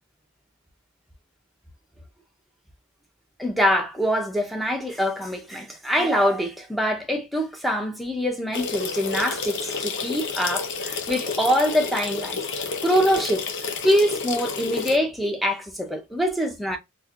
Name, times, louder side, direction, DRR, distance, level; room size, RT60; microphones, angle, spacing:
voice 1, 3.4-12.4 12.8-13.4 13.8-16.8, equal, ahead, 0.6 m, -24 dB
sound 1, 8.5-15.0, left 5 dB, 55° left, 0.7 m, -30 dB
4.3 x 2.5 x 2.4 m
head